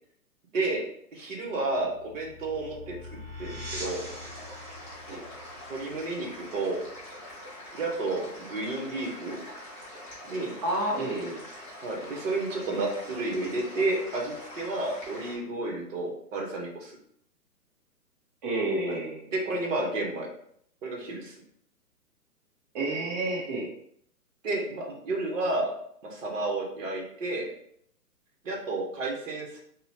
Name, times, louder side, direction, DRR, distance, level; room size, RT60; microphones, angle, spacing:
voice 1, 1.1-2.9 3.4-4.0 5.7-6.8 7.7-9.4 10.3-10.5 11.8-17.0 18.9-19.0 19.3-20.3 20.8-21.3 24.4-25.7 26.0-27.5 28.4-29.6, right 2 dB, 55° right, -1 dB, 0.9 m, -31 dB
sound 1, 1.7-7.1, left 1 dB, 10° right, 1.3 m, -43 dB
sound 2, 3.8-15.4, left 1 dB, 20° left, 0.7 m, -44 dB
voice 2, 10.6-11.4 18.4-19.3 22.7-23.7, right 1 dB, 25° right, -4 dB, 0.8 m, -29 dB
2.8 x 2.1 x 2.8 m, 0.68 s
hypercardioid pair, 140°, 48 cm